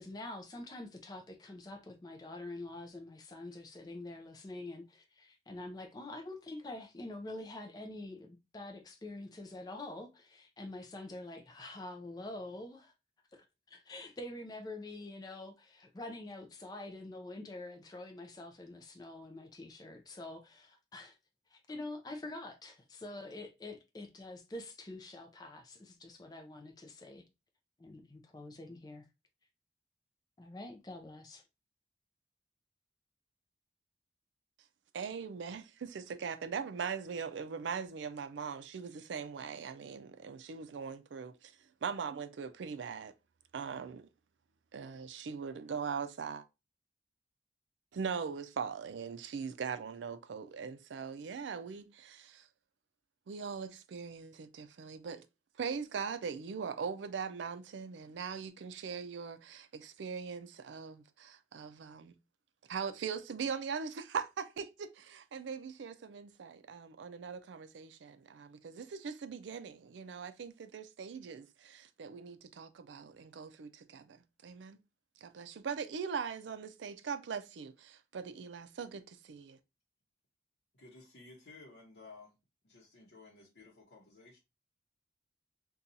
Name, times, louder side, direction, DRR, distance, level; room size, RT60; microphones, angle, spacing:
voice 1, 0.0-12.9 13.3-21.2 21.5-27.2 27.8-29.0 30.4-31.4, left 2 dB, 20° left, 0.4 m, -46 dB
voice 2, 34.9-41.5 41.8-43.1 43.5-44.1 44.7-46.4 47.9-52.5 53.3-55.2 55.6-62.1 62.7-74.8 75.2-79.6, right 6 dB, 85° right, 0.4 m, -41 dB
voice 3, 80.7-82.4 82.6-84.4, left 3 dB, 70° left, 0.8 m, -55 dB
2.7 x 2.3 x 3.8 m
head